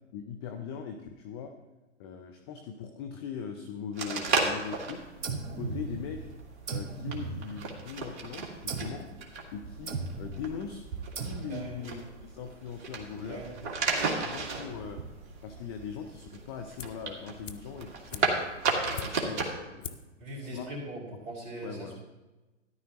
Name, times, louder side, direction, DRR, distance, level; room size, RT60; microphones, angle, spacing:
voice 1, 0.1-1.5 2.0-5.1 5.6-6.3 6.7-9.1 9.5-10.8 11.2-13.5 14.1-15.0 15.4-18.5 18.9-19.9 20.4-20.7 21.6-22.0, left 7 dB, 20° left, 5 dB, 0.5 m, -40 dB
sound 1, 3.9-19.5, right 4 dB, 40° right, 1.8 m, -35 dB
sound 2, 5.2-6.3 6.7-8.0 8.7-9.1 9.9-10.4 11.2-11.8, right 4 dB, 75° right, 1.4 m, -37 dB
voice 2, 11.5-11.9 13.3-13.6 20.2-22.0, right 1 dB, 20° right, -5 dB, 4.2 m, -40 dB
sound 3, 16.8-17.1 17.4-19.4 19.8-20.2 20.5-20.6, left 7 dB, 75° left, 0.8 m, -43 dB
13.5 x 10.5 x 2.9 m, 1.1 s
figure-of-eight pair, 125°, 38 cm